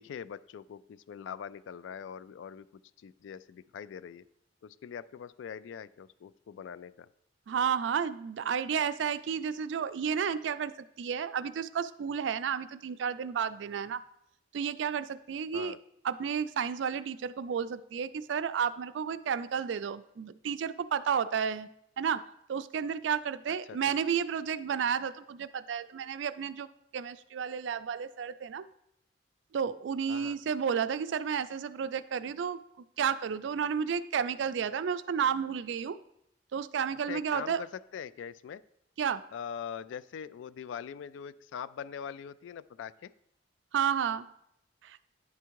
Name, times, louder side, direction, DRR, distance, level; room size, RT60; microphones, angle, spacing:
voice 1, 0.0-2.7 3.0-4.2 4.6-7.1 15.5-15.8 23.7-24.0 30.1-30.4 37.1-38.6 39.3-43.1, left 7 dB, 85° left, 17 dB, 0.3 m, -42 dB
voice 2, 7.5-14.0 14.5-15.8 16.0-21.7 22.0-22.2 22.5-26.7 26.9-28.7 29.5-32.6 33.0-36.0 36.5-37.6 39.0-39.2 43.7-44.3 44.8-45.0, right 7 dB, 75° right, 14 dB, 0.3 m, -32 dB
9.8 x 3.5 x 4.6 m, 0.76 s
head